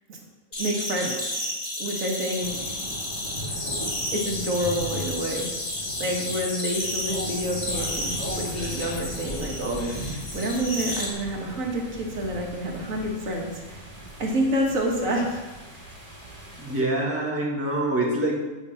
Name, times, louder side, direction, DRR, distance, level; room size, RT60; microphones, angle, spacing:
sound 1, 0.5-11.1, left 1 dB, 40° left, 2.4 m, -32 dB
voice 1, 0.6-1.5 1.8-2.8 4.1-5.5 6.0-8.1 8.4-13.8 14.2-15.4, equal, 75° right, 0 dB, 1.8 m, -28 dB
sound 2, 2.4-16.8, equal, 25° right, 3.0 m, -38 dB
voice 2, 16.6-18.3, right 1 dB, 10° right, -3 dB, 1.9 m, -25 dB
8.2 x 5.6 x 6.9 m, 1.1 s
omnidirectional pair, 1.4 m